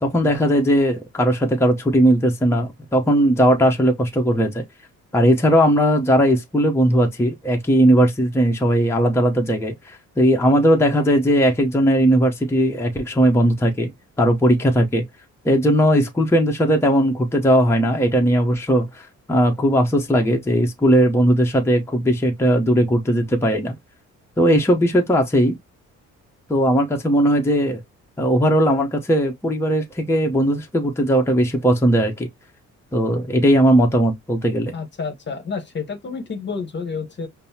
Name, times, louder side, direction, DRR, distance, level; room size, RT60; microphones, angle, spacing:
voice 1, 0.0-4.6 5.1-13.9 14.2-15.0 15.4-23.7 24.4-25.5 26.5-27.8 28.2-32.3 32.9-34.7, equal, 10° left, 0.8 m, -18 dB
voice 2, 34.7-37.3, left 5 dB, 35° left, 0.9 m, -29 dB
5.3 x 2.0 x 2.8 m
cardioid pair, 90°, 30 cm